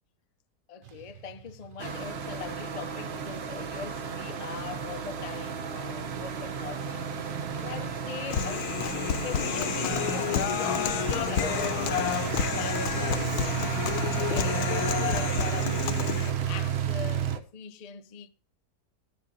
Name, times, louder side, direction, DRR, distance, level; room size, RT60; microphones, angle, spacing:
voice 1, 0.7-7.1 7.6-8.7 9.2-12.1 12.6-18.3, left 7 dB, 50° left, 0.4 m, -41 dB
sound 1, 0.9-17.4, right 10 dB, 65° right, 0.5 m, -35 dB
sound 2, 1.8-17.4, right 5 dB, 45° right, 1.0 m, -35 dB
Human voice, 8.3-16.3, left 8 dB, 70° left, 1.3 m, -30 dB
12.5 x 10.5 x 4.0 m
omnidirectional pair, 1.7 m